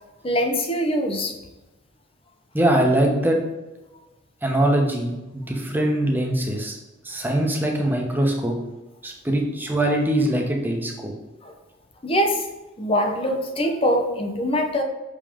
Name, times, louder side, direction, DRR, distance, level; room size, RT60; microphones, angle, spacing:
voice 1, 0.2-1.3 11.4-11.5 12.0-12.5 12.8-14.8, equal, 25° left, 4 dB, 0.8 m, -23 dB
voice 2, 2.5-3.4 4.4-6.8 7.0-8.6 9.0-11.1, right 1 dB, 10° right, 1 dB, 1.0 m, -22 dB
6.4 x 5.3 x 3.6 m, 1.0 s
head